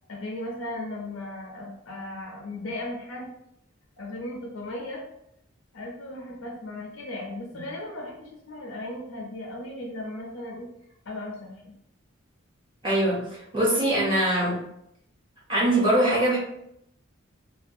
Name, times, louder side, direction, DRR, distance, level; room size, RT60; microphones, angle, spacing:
voice 1, 0.1-3.3 4.0-5.0 5.7-10.7 11.1-11.7, left 1 dB, 80° left, -1 dB, 0.6 m, -36 dB
voice 2, 12.8-14.6 15.5-16.4, right 1 dB, 25° right, -8 dB, 1.2 m, -22 dB
2.6 x 2.3 x 2.5 m, 0.77 s
head